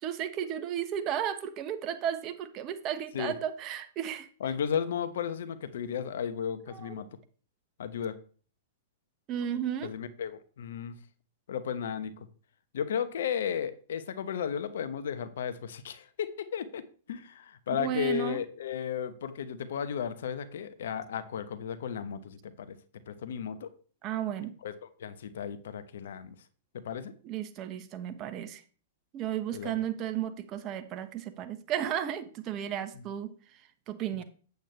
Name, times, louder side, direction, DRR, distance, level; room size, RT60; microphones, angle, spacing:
voice 1, 0.0-4.3 6.6-7.0 9.3-9.9 17.8-18.4 24.0-24.5 27.2-28.6 29.1-34.2, right 10 dB, 35° right, 9 dB, 1.1 m, -34 dB
voice 2, 4.4-7.1 7.8-8.2 9.8-11.0 11.5-12.3 12.7-22.8 23.1-23.7 24.6-24.7 25.0-26.3 26.7-27.1 29.5-29.8, left 8 dB, 70° left, 11 dB, 1.0 m, -34 dB
8.5 x 8.1 x 3.3 m, 0.40 s
hypercardioid pair, 110°, 0 cm